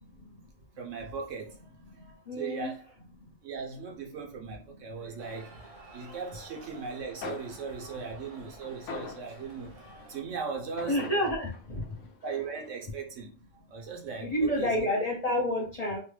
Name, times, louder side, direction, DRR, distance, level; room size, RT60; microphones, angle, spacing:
voice 1, 0.8-2.8 3.4-5.6 5.9-9.8 10.1-11.1 12.2-14.9, right 5 dB, 80° right, 1.2 m, -38 dB
voice 2, 2.3-2.7 10.9-11.8 14.2-16.0, equal, 45° left, 0.5 m, -29 dB
sound 1, 5.2-10.2, right 2 dB, 40° right, 0.6 m, -51 dB
sound 2, 7.2-9.8 10.8-12.7, left 4 dB, 75° left, 1.0 m, -43 dB
3.0 x 2.2 x 3.1 m
omnidirectional pair, 1.3 m